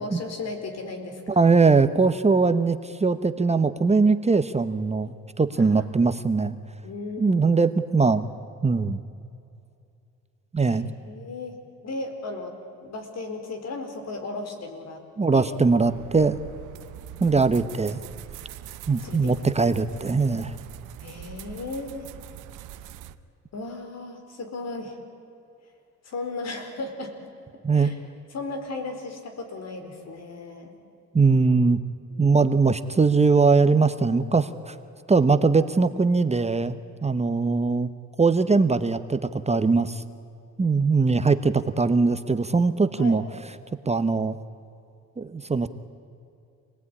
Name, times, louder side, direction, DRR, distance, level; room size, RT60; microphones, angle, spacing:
voice 1, 0.0-1.4 5.6-5.8 6.8-7.5 10.6-10.8 11.0-11.6 11.8-12.5 12.8-15.0 15.3-15.5 19.0-19.7 21.0-22.1 23.5-25.0 26.0-27.1 27.7-28.0 28.3-30.7 32.1-32.4 43.0-43.2, left 3 dB, 60° left, 5 dB, 4.6 m, -35 dB
voice 2, 1.3-6.6 7.2-8.3 8.6-9.0 10.5-10.9 15.2-16.4 17.2-18.0 18.9-20.5 27.6-27.9 31.1-31.8 32.2-34.7 35.1-37.9 38.2-40.0 40.6-43.2 43.9-44.4 45.2-45.7, right 4 dB, 20° right, 11 dB, 1.0 m, -21 dB
sound 1, 15.8-23.1, right 11 dB, 90° right, 1.0 m, -42 dB
27.0 x 19.0 x 9.8 m, 2.6 s
cardioid pair, 90°, 30 cm